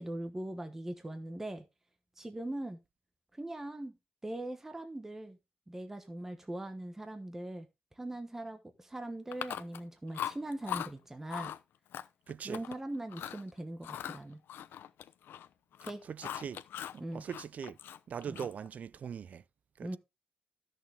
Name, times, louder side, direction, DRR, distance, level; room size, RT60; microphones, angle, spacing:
voice 1, 0.0-1.6 2.2-2.8 3.3-3.9 4.2-5.4 5.7-7.7 8.0-11.5 12.4-14.4 15.8-16.0 17.0-17.3 18.3-18.5 19.8-20.0, right 1 dB, 10° right, 1.1 m, -41 dB
Chewing mastication, 9.3-9.9 10.1-10.9 11.3-11.6 11.9-12.8 13.1-13.4 13.8-15.5 15.7-17.0 17.3-18.7, left 10 dB, 80° left, 0.7 m, -40 dB
voice 2, 12.3-12.6 16.1-16.6 16.9-17.8 18.1-19.4 19.8-20.0, right 7 dB, 45° right, 0.4 m, -41 dB
13.0 x 6.5 x 3.5 m
wide cardioid pair, 160°, 4 cm